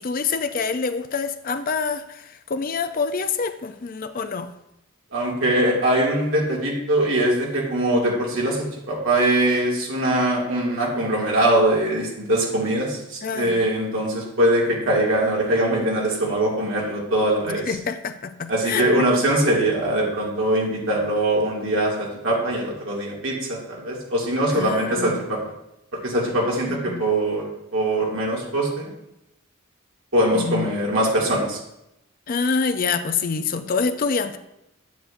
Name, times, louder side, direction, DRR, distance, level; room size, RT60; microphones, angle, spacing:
voice 1, 0.0-4.5 13.2-13.6 17.5-18.8 24.5-25.2 26.7-27.0 30.3-30.7 32.3-34.4, left 5 dB, 40° left, 10 dB, 0.5 m, -26 dB
voice 2, 5.1-17.8 18.5-25.4 25.9-27.4 27.7-28.9 30.1-31.6, right 1 dB, 70° right, -3 dB, 2.2 m, -22 dB
9.3 x 7.8 x 2.6 m, 0.86 s
head